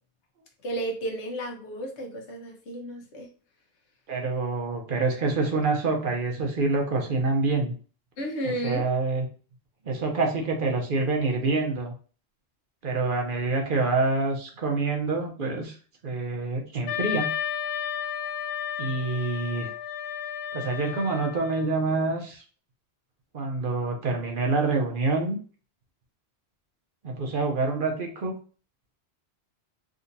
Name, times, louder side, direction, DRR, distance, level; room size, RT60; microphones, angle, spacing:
voice 1, 0.6-3.3 8.2-8.8, right 1 dB, 85° left, 1 dB, 1.2 m, -32 dB
voice 2, 4.1-7.7 8.4-9.3 9.8-11.9 12.8-15.7 16.0-17.3 18.8-19.7 20.5-22.4 23.3-25.4 27.0-28.3, right 3 dB, 55° right, 2 dB, 0.8 m, -26 dB
Wind instrument woodwind instrument, 16.9-21.7, left 9 dB, 70° left, 0.8 m, -33 dB
3.7 x 2.8 x 2.5 m, 0.40 s
omnidirectional pair, 1.1 m